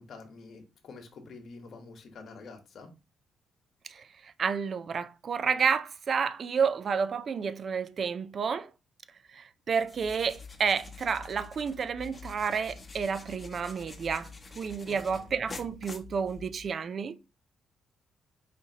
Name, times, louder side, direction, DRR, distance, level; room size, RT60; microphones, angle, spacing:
voice 1, 0.0-2.9 14.8-15.3, left 4 dB, 60° left, 1.2 m, -47 dB
voice 2, 3.8-8.7 9.3-17.2, right 6 dB, 50° right, 0.4 m, -30 dB
sound 1, 9.8-16.8, left 4 dB, 25° left, 0.8 m, -47 dB
5.0 x 2.8 x 2.8 m
cardioid pair, 90°, 0 cm